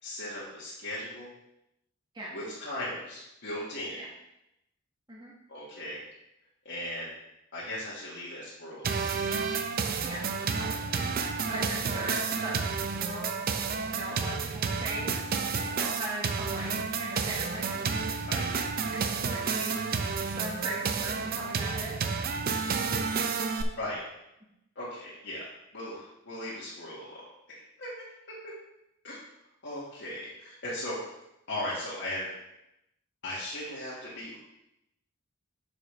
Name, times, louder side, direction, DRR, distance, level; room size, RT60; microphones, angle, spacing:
voice 1, 0.0-1.3 2.3-4.0 5.5-6.0 6.6-7.1 7.5-9.0 18.3-18.5 23.8-24.0 24.7-25.5 25.7-27.9 28.3-28.5 29.0-29.2 29.6-31.2 31.5-32.3 33.2-34.4, left 1 dB, 55° left, -8 dB, 1.7 m, -37 dB
sound 1, 8.8-23.6, right 5 dB, 45° right, 0.5 m, -31 dB
voice 2, 10.6-11.1 11.5-12.6 12.8-13.3 13.9-15.1 15.7-17.8 18.9-21.9, right 1 dB, 20° right, -5 dB, 1.5 m, -39 dB
8.1 x 6.8 x 3.2 m, 0.85 s
head